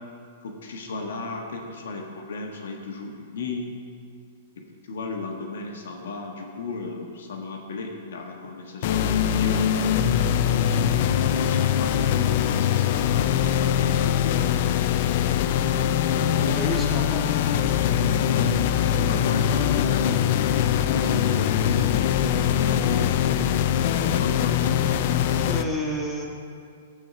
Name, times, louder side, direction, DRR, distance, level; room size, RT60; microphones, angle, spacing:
voice 1, 0.4-3.7 4.8-9.6 10.8-14.7 15.7-16.6 18.3-18.5 18.9-22.3 22.6-24.8, left 3 dB, 75° left, 1 dB, 1.5 m, -35 dB
sound 1, 8.8-25.6, left 9 dB, 55° left, 0.5 m, -22 dB
voice 2, 16.5-17.3 25.5-26.2, equal, 5° left, -3 dB, 1.8 m, -30 dB
14.5 x 4.8 x 5.9 m, 2.3 s
hypercardioid pair, 125°, 0 cm